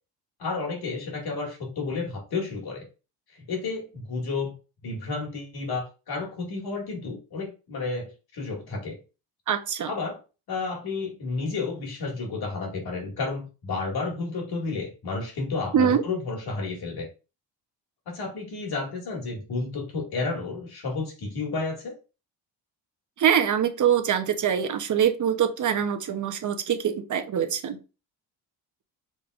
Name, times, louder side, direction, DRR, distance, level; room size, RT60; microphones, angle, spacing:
voice 1, 0.4-2.9 3.3-4.6 4.8-9.0 9.9-10.2 10.5-17.1 18.1-21.9, left 3 dB, 55° left, 1 dB, 2.2 m, -31 dB
voice 2, 9.5-9.9 15.7-16.0 23.2-27.8, right 8 dB, 45° right, 8 dB, 0.8 m, -24 dB
5.3 x 3.4 x 2.5 m, 0.32 s
cardioid pair, 85°, 44 cm